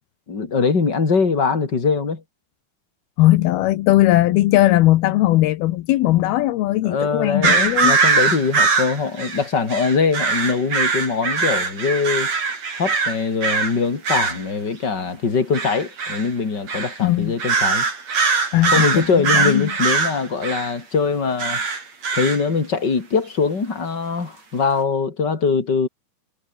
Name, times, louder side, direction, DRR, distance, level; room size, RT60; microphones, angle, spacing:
voice 1, 0.3-2.2 6.8-12.3 12.8-17.9 18.7-21.6 22.2-25.9, left 5 dB, 30° left, 4.0 m, -22 dB
voice 2, 3.2-8.0 17.0-17.3 18.5-19.7, left 16 dB, 80° left, 2.8 m, -18 dB
sound 1, 7.4-13.7 14.0-14.4 15.5-16.3 16.7-17.0 17.4-20.7 21.4-22.4, right 4 dB, 45° right, 5.6 m, -21 dB
omnidirectional pair, 4.4 m